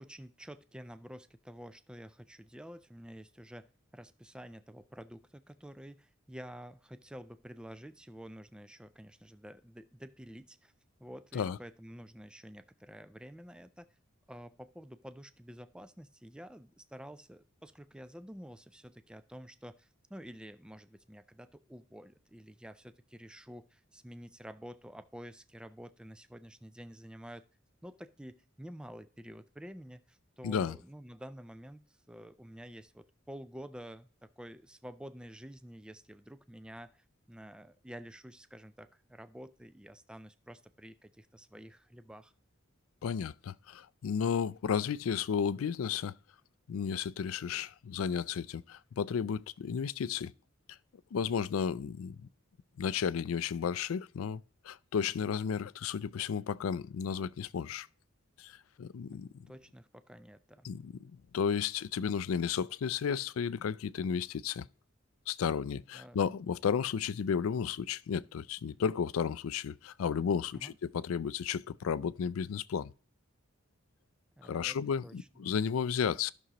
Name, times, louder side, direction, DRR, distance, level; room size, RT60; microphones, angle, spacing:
voice 1, 0.0-3.7 3.9-10.7 11.0-13.9 14.3-27.4 27.8-42.3 59.5-60.7 65.9-66.2 70.5-70.8 74.4-74.8 75.0-75.3, equal, 5° right, 0.3 m, -49 dB
voice 2, 30.4-30.8 43.0-46.2 46.7-50.3 51.1-52.3 52.8-57.9 58.4-59.5 60.6-64.7 65.3-72.9 74.4-76.3, left 7 dB, 80° left, 0.4 m, -33 dB
14.0 x 6.2 x 2.9 m
head